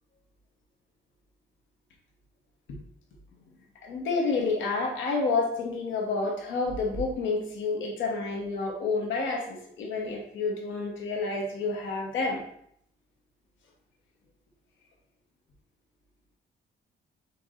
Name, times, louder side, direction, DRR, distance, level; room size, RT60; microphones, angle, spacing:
voice 1, 3.8-12.4, left 3 dB, 75° left, 1 dB, 1.0 m, -29 dB
4.6 x 3.7 x 2.5 m, 0.68 s
cardioid pair, 90°, 20 cm